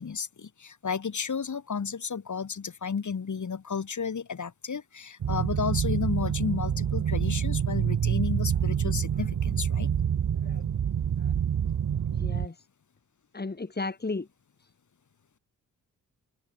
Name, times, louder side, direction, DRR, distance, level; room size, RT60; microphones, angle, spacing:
voice 1, 0.0-9.9, left 6 dB, 55° left, 7.9 m, -32 dB
sound 1, 5.2-12.5, right 8 dB, 65° right, 2.3 m, -27 dB
voice 2, 12.1-12.6 13.3-14.3, left 3 dB, 25° left, 3.6 m, -34 dB
cardioid pair, 55°, 35 cm